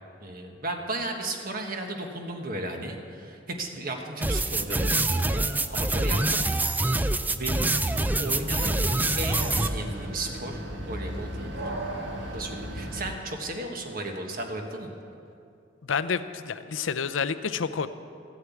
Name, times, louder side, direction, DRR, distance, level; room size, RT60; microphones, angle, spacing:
voice 1, 0.2-4.9 5.3-6.5 7.3-7.7 8.2-11.7 12.2-14.9, right 2 dB, 50° right, 3 dB, 1.4 m, -35 dB
sound 1, 4.2-9.7, right 2 dB, 10° right, 0.3 m, -25 dB
sound 2, 8.1-13.1, right 1 dB, 70° right, 1.5 m, -35 dB
voice 2, 15.8-17.9, left 6 dB, 85° left, 12 dB, 0.6 m, -29 dB
14.5 x 7.9 x 8.3 m, 2.6 s
head